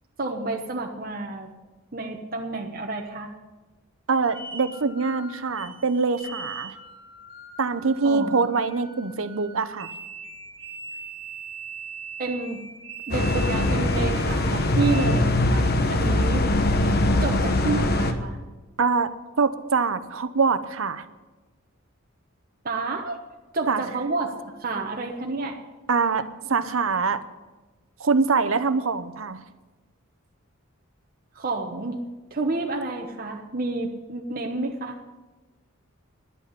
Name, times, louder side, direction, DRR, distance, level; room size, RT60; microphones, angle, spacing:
voice 1, 0.2-1.5 1.9-3.3 8.0-8.5 12.2-12.6 13.1-16.5 17.2-18.4 22.6-23.2 23.5-25.6 31.3-32.0 32.3-35.0, right 3 dB, 45° right, 1 dB, 1.0 m, -29 dB
voice 2, 4.1-6.7 7.6-9.9 18.8-19.1 19.4-21.0 23.7-23.8 25.9-27.2 28.0-29.4, right 4 dB, 70° right, 12 dB, 0.8 m, -24 dB
sound 1, 4.2-15.1, right 4 dB, 25° right, 1.7 m, -41 dB
sound 2, 13.1-18.1, left 1 dB, 50° left, 1.1 m, -22 dB
11.0 x 8.4 x 9.9 m, 1.2 s
head